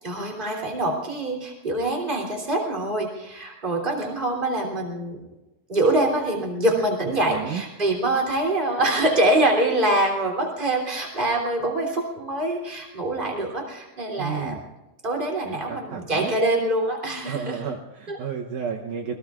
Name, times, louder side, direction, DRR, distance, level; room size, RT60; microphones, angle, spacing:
voice 1, 0.0-5.2 5.7-14.6 15.0-17.6 18.1-18.2, right 1 dB, 15° right, 0 dB, 2.6 m, -24 dB
voice 2, 7.0-7.6 14.2-14.6 15.4-16.3 17.3-19.2, right 7 dB, 80° right, 1 dB, 1.7 m, -32 dB
27.5 x 21.5 x 2.5 m, 1.0 s
omnidirectional pair, 4.8 m